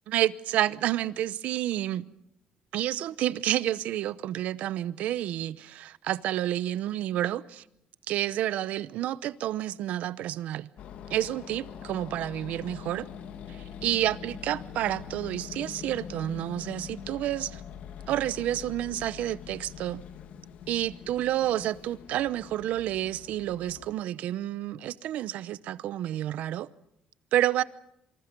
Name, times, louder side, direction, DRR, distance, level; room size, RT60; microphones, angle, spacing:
voice 1, 0.1-2.1 2.7-7.6 8.1-10.7 11.1-13.1 13.5-17.6 18.1-20.0 20.7-26.7 27.3-27.6, right 13 dB, 70° right, 0.8 m, -29 dB
sound 1, 10.8-23.9, left 8 dB, 60° left, 1.7 m, -44 dB
26.5 x 25.5 x 5.3 m
cardioid pair, 165°, 3 cm